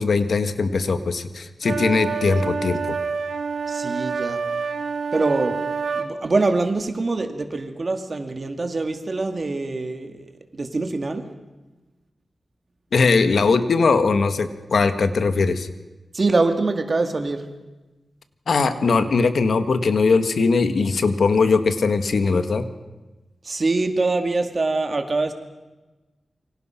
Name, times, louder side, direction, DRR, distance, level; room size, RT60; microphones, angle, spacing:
voice 1, 0.0-3.0 12.9-15.7 18.5-22.7, left 4 dB, 70° left, 10 dB, 1.6 m, -20 dB
sound 1, 1.6-6.1, right 5 dB, 90° right, 2.8 m, -27 dB
voice 2, 3.7-4.4 5.1-5.6 6.0-11.3 16.1-17.4 23.4-25.3, right 3 dB, 40° right, 6 dB, 2.2 m, -24 dB
28.0 x 24.5 x 5.9 m, 1.2 s
wide cardioid pair, 145°, 0 cm